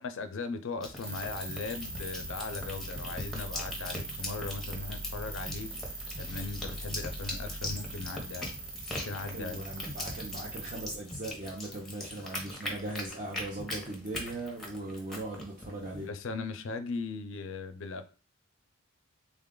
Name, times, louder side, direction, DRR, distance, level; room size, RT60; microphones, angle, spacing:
voice 1, 0.0-5.7 6.2-8.5 9.0-9.6 16.0-18.1, left 4 dB, 60° left, 0.4 m, -38 dB
sound 1, 0.8-16.1, left 1 dB, ahead, 0.7 m, -41 dB
sound 2, 1.0-11.0, right 2 dB, 50° right, 1.1 m, -41 dB
voice 2, 9.2-16.1, right 2 dB, 35° right, 0.5 m, -39 dB
3.6 x 2.3 x 3.6 m
head